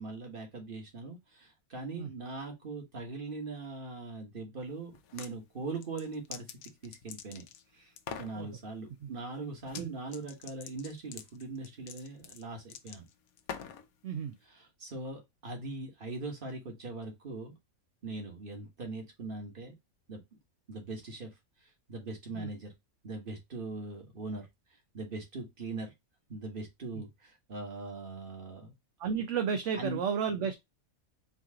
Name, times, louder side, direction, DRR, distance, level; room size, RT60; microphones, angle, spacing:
voice 1, 0.0-6.5 6.8-7.4 7.7-13.0 14.4-17.5 18.0-19.7 20.1-20.4 20.7-21.3 21.9-22.7 23.0-24.5 24.9-25.9 26.3-28.7 29.7-30.0, right 3 dB, 40° right, 1.7 m, -41 dB
sound 1, 4.9-5.3 5.7-7.6 8.0-8.3 9.6-9.9 10.1-13.9, left 8 dB, 80° left, 1.1 m, -44 dB
voice 2, 14.0-14.4 22.3-22.5 29.0-30.5, right 7 dB, 65° right, 0.9 m, -32 dB
4.7 x 2.9 x 3.6 m
omnidirectional pair, 1.5 m